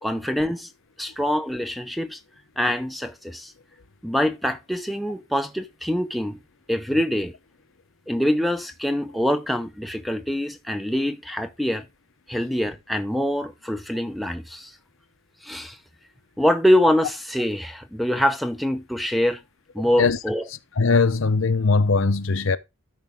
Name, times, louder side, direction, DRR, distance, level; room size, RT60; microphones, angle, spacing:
voice 1, 0.0-0.7 1.0-2.2 2.6-3.5 4.0-6.4 6.7-7.3 8.1-11.9 12.3-14.7 15.4-15.8 16.4-19.4 19.7-20.4, equal, ahead, 0.6 m, -24 dB
voice 2, 19.8-20.2 20.8-22.6, left 4 dB, 70° left, 0.8 m, -20 dB
13.0 x 5.3 x 3.5 m
head